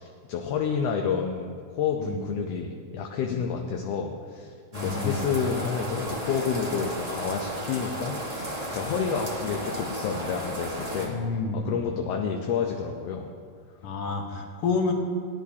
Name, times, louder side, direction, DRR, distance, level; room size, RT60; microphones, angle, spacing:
voice 1, 0.0-13.3, left 6 dB, 75° left, 2 dB, 1.6 m, -30 dB
voice 2, 4.7-5.3 8.7-8.8 11.0-11.8 13.8-14.9, left 4 dB, 60° left, 2 dB, 1.9 m, -29 dB
sound 1, 4.7-11.1, right 1 dB, 45° right, 0.5 m, -34 dB
18.0 x 10.5 x 2.8 m, 2.1 s
omnidirectional pair, 3.3 m